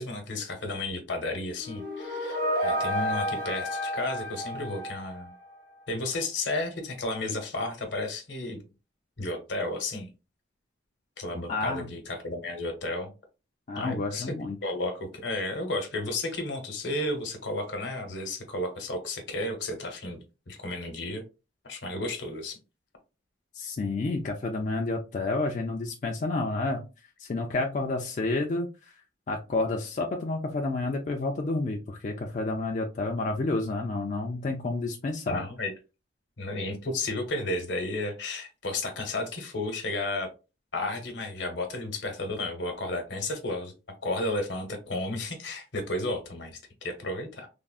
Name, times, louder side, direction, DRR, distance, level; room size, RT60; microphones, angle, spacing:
voice 1, 0.0-5.3 5.9-8.6 9.2-10.1 11.2-13.1 13.8-14.3 14.6-20.2 20.5-21.2 21.6-22.6 35.3-35.7 36.4-40.3 40.7-43.7 44.0-47.5, left 2 dB, 75° left, 5 dB, 0.9 m, -33 dB
sound 1, 1.6-5.5, equal, 50° right, 0.9 m, -31 dB
voice 2, 11.5-11.9 13.7-14.6 23.5-26.8 27.2-29.0 29.3-35.5, left 2 dB, 40° left, 1 dB, 0.3 m, -30 dB
3.5 x 2.0 x 2.3 m, 0.29 s
head